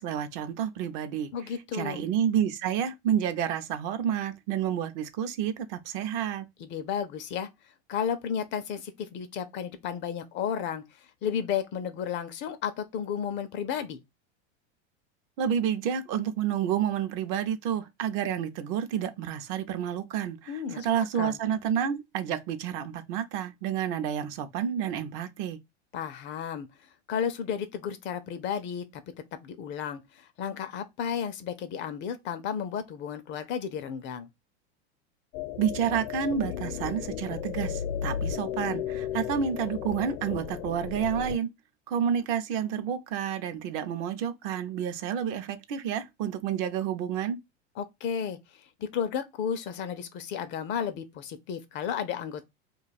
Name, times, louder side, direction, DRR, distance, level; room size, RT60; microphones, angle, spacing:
voice 1, 0.0-1.3 1.7-6.5 15.4-25.6 35.6-41.5 41.9-47.4, right 8 dB, 50° right, 0.6 m, -29 dB
voice 2, 1.3-2.0 6.6-7.5 7.9-14.0 20.5-20.9 21.2-21.4 25.9-26.7 27.1-29.0 29.4-34.3 47.8-52.5, left 8 dB, 35° left, 0.4 m, -33 dB
sound 1, 35.3-41.4, left 9 dB, 75° left, 0.6 m, -34 dB
2.4 x 2.3 x 4.0 m
supercardioid pair, 120°, 34 cm